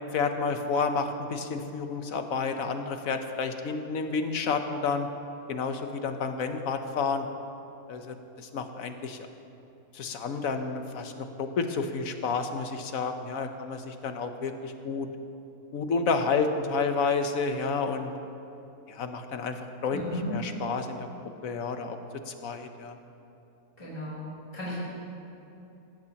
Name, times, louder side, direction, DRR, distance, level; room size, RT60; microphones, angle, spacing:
voice 1, 0.1-5.1 5.5-7.3 7.9-9.3 9.9-15.1 15.7-18.1 18.9-20.0 20.3-21.1 21.4-22.0 22.3-23.0, left 4 dB, 65° left, 7 dB, 1.2 m, -30 dB
voice 2, 19.9-20.3 23.8-24.3 24.5-24.7, left 1 dB, 20° left, -8 dB, 3.5 m, -35 dB
18.0 x 15.5 x 2.9 m, 2.9 s
omnidirectional pair, 1.6 m